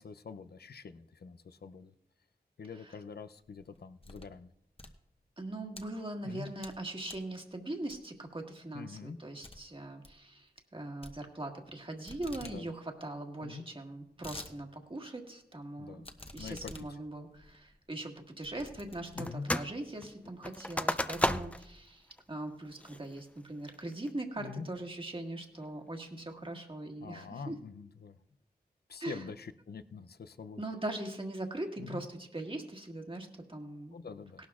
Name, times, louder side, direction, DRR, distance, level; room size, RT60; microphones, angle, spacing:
voice 1, 0.0-1.9 2.6-4.5 6.2-6.5 8.7-9.2 12.4-12.7 13.4-13.6 15.8-16.1 16.4-16.7 19.1-19.5 24.4-24.7 27.0-28.2 28.9-30.6 31.8-32.0 33.9-34.4, left 5 dB, 75° left, 11 dB, 0.6 m, -45 dB
sound 1, 3.4-4.4 4.7-5.8 6.3-6.8 7.1-7.3 7.9-8.3 8.6-8.7 9.0-9.1 9.4-9.6 9.9-10.2 11.0-11.8 12.1-12.6 12.9-13.0 13.2-13.3 13.8-14.5 15.0-15.1 16.0-19.5 20.1-20.2 20.5-21.8, left 1 dB, 35° left, 1.1 m, -50 dB
voice 2, 5.4-16.0 16.3-27.6 29.0-29.3 30.6-34.0 34.4-34.5, right 2 dB, 30° right, 2 dB, 1.7 m, -41 dB
sound 2, 19.2-19.7 20.0-21.7 22.2-22.3 22.8-23.2 23.7-24.1, left 1 dB, 10° left, 0.5 m, -33 dB
17.5 x 12.0 x 2.4 m, 0.82 s
wide cardioid pair, 50°, 16 cm